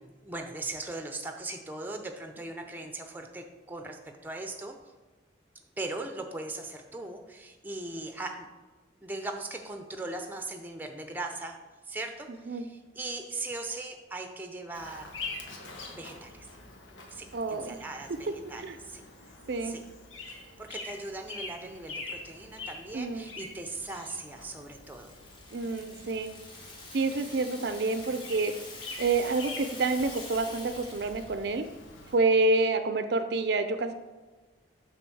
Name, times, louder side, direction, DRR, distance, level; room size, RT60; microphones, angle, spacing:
voice 1, 0.0-4.8 5.8-8.5 9.0-11.6 11.9-15.2 15.9-16.5 17.1-19.3 19.6-19.8 20.6-25.1, right 2 dB, 10° right, 4 dB, 0.6 m, -39 dB
Bird vocalization bird call bird song, 14.7-32.2, left 3 dB, 85° left, 1.2 m, -45 dB
voice 2, 17.3-17.8 18.6-18.8 19.5-19.8 22.9-23.3 25.5-26.4 26.9-28.5 29.0-31.7 32.1-33.9, right 3 dB, 60° right, 9 dB, 0.4 m, -28 dB
Rattle (instrument), 24.4-31.3, left 2 dB, 25° left, 1.1 m, -46 dB
7.7 x 3.6 x 6.2 m, 1.3 s
head